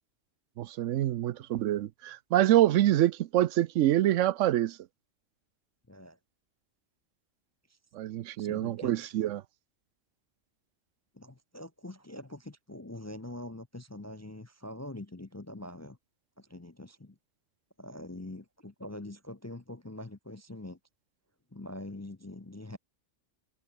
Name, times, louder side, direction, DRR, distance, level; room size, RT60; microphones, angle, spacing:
voice 1, 0.6-4.8 7.9-9.4, right 13 dB, 85° right, 1.0 m, -26 dB
voice 2, 5.9-6.2 7.7-7.8 8.4-9.0 11.1-16.0 16.4-17.2 17.8-20.8 21.5-22.8, left 1 dB, 20° left, 0.5 m, -44 dB
omnidirectional pair, 1.3 m